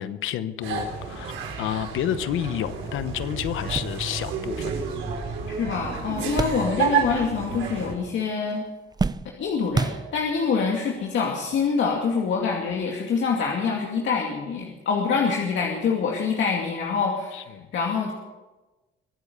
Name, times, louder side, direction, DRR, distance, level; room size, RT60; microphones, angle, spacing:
voice 1, 0.0-4.8 6.4-6.5 17.3-17.7, left 10 dB, 85° left, 13 dB, 1.0 m, -30 dB
sound 1, 0.6-7.9, right 6 dB, 85° right, 4.9 m, -30 dB
sound 2, 2.9-3.0 3.4-7.2 7.5-8.2 8.5-10.5 11.3-11.4 12.7-12.9, right 4 dB, 20° right, 0.6 m, -32 dB
voice 2, 5.5-8.6 9.4-18.1, left 5 dB, 70° left, 0 dB, 2.5 m, -25 dB
24.0 x 8.3 x 6.9 m, 1.1 s
cardioid pair, 90°, 20 cm